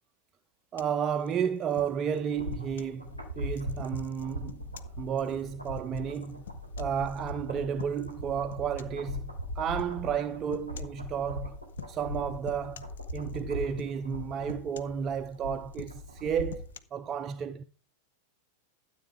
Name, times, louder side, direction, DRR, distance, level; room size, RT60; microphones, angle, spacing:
voice 1, 0.7-4.6 5.0-6.4 6.8-11.6 11.9-17.6, right 7 dB, 25° right, 0.5 m, -32 dB
sound 1, 0.8-3.0 3.5-7.3 7.8-8.2 8.5-9.1 9.8-10.0 10.5-11.0 11.7-12.2 12.5-13.4 13.8-14.2 14.5-15.3 15.7-16.8, left 8 dB, 65° left, 0.7 m, -47 dB
sound 2, 2.1-16.8 17.1-17.2, left 1 dB, 90° left, 3.3 m, -40 dB
12.5 x 8.3 x 4.6 m
figure-of-eight pair, 90°, 0 cm